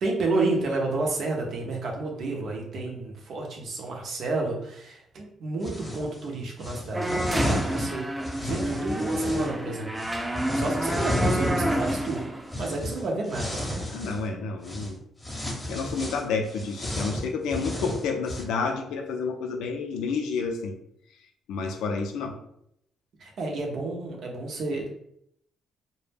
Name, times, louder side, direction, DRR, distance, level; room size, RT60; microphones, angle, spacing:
voice 1, 0.0-8.1 8.3-9.9 10.5-12.2 12.6-13.6 23.2-24.9, right 3 dB, 65° right, 0 dB, 0.6 m, -30 dB
sound 1, 5.6-6.1 6.6-9.5 10.0-14.3 14.6-14.9 15.2-18.4, left 1 dB, 20° left, 0.8 m, -32 dB
sound 2, 6.9-12.7, right 1 dB, 10° right, 0.3 m, -29 dB
voice 2, 13.9-15.0 15.7-20.8 21.5-22.4, left 4 dB, 85° left, 4 dB, 0.3 m, -30 dB
2.1 x 2.0 x 3.3 m, 0.74 s
supercardioid pair, 70°, 0 cm